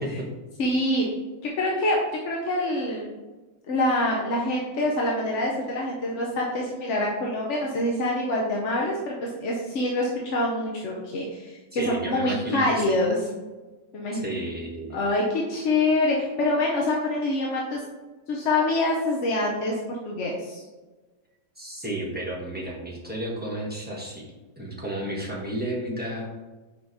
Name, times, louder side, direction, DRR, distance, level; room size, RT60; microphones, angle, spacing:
voice 1, 0.6-1.1 1.4-2.0 2.2-3.1 3.7-13.2 13.9-14.3 14.9-17.8 18.3-20.6, left 1 dB, 55° left, -3 dB, 0.9 m, -25 dB
voice 2, 11.7-13.0 14.1-15.0 21.6-24.2 24.6-26.3, right 1 dB, 5° right, -5 dB, 0.8 m, -32 dB
4.9 x 4.7 x 4.0 m, 1.2 s
omnidirectional pair, 1.9 m